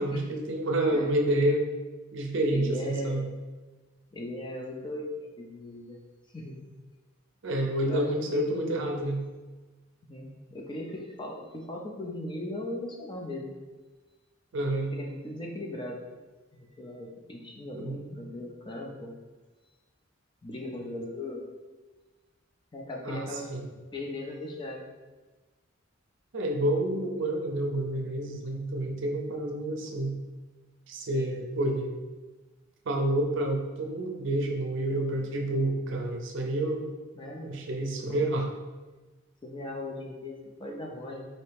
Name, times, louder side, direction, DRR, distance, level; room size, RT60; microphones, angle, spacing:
voice 1, 0.0-1.6 2.1-3.3 7.4-9.2 14.5-14.9 17.7-18.0 23.0-23.6 26.3-30.2 30.9-31.9 32.9-36.9 37.4-38.5, right 1 dB, 65° right, 2 dB, 0.5 m, -29 dB
voice 2, 2.5-3.3 4.1-6.0 6.3-6.6 7.9-8.8 10.1-13.5 14.9-16.0 16.5-19.1 20.4-21.4 22.7-23.5 23.9-24.8 31.1-31.3 37.1-37.6 38.1-38.3 39.4-41.3, left 1 dB, 25° left, 0 dB, 0.5 m, -38 dB
4.1 x 2.8 x 3.3 m, 1.2 s
head